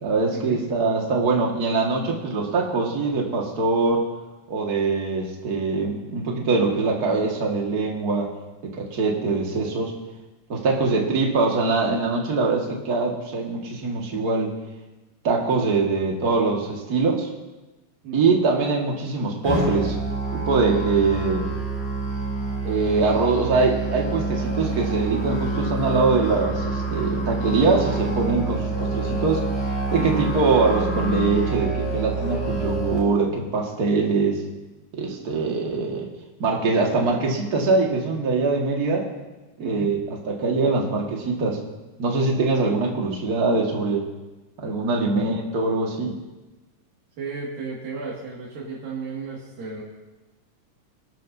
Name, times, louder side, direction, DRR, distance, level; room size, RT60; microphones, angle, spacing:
voice 1, 0.0-4.0 4.5-8.3 8.6-9.9 10.5-14.5 15.2-17.3 18.1-20.0 20.3-21.5 22.6-29.4 29.9-34.4 34.9-36.1 36.4-39.1 39.6-40.0 40.3-41.6 42.0-44.1 44.6-46.1, right 3 dB, 35° right, -1 dB, 1.7 m, -23 dB
voice 2, 10.5-10.8 18.0-18.4 39.6-39.9 45.0-45.2 47.2-49.8, right 4 dB, 85° right, -5 dB, 3.8 m, -35 dB
Musical instrument, 19.4-33.0, right 3 dB, 45° left, 4.5 m, -27 dB
23.5 x 12.0 x 2.7 m, 1.1 s
omnidirectional pair, 3.9 m